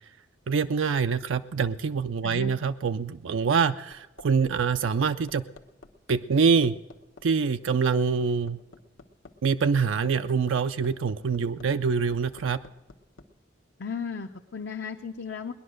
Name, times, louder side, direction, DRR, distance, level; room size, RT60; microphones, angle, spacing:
voice 1, 0.5-5.4 6.1-6.7 7.2-8.6 9.4-12.6, right 5 dB, 80° right, 9 dB, 0.5 m, -25 dB
Hammer, 3.4-13.3 14.6-14.7, left 3 dB, 80° left, 1.1 m, -51 dB
voice 2, 13.8-15.5, left 5 dB, 60° left, 3 dB, 0.7 m, -35 dB
19.5 x 11.0 x 6.4 m, 1.0 s
head